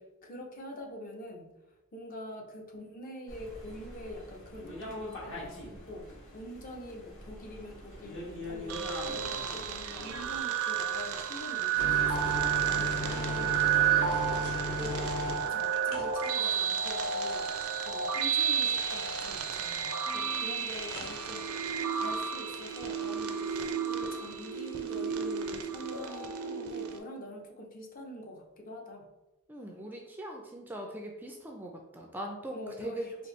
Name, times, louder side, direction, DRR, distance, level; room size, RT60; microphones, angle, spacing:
voice 1, 0.0-1.5 1.9-17.5 17.8-21.5 21.9-29.0 32.5-33.1, left 1 dB, 40° left, 1 dB, 0.6 m, -45 dB
sound 1, 3.3-10.4, left 1 dB, 60° left, 1.3 m, -44 dB
sound 2, 8.7-27.0, right 8 dB, 70° right, 0.5 m, -31 dB
sound 3, 11.8-19.4 20.8-21.1, left 1 dB, 85° left, 0.8 m, -38 dB
voice 2, 20.1-20.7 29.5-33.1, right 1 dB, 10° right, 1 dB, 0.3 m, -41 dB
4.4 x 2.7 x 3.1 m, 1.0 s
head